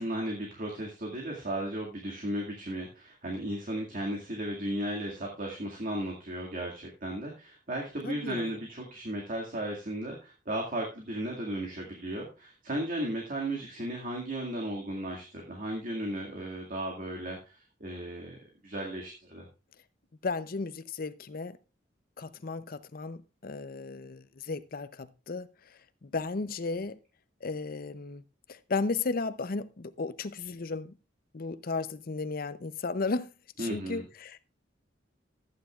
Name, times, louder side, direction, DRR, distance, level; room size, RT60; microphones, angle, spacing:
voice 1, 0.0-19.5 33.6-34.0, right 1 dB, 50° right, 2.1 m, -35 dB
voice 2, 8.0-8.5 20.2-21.6 22.2-25.5 26.0-27.0 27.4-28.2 28.5-30.9 31.3-33.3 33.6-34.4, left 3 dB, 50° left, 0.6 m, -34 dB
14.5 x 9.4 x 2.4 m
head